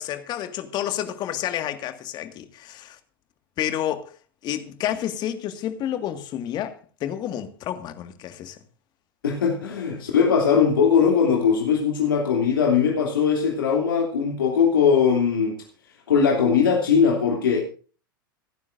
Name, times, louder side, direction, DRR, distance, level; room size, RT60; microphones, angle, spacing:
voice 1, 0.0-3.0 3.6-4.1 4.4-8.6 9.9-10.0, left 11 dB, 40° left, 1.9 m, -30 dB
voice 2, 9.2-15.6 16.1-17.6, left 6 dB, 70° left, 2.9 m, -20 dB
28.0 x 9.6 x 2.6 m
figure-of-eight pair, 90°, 12 cm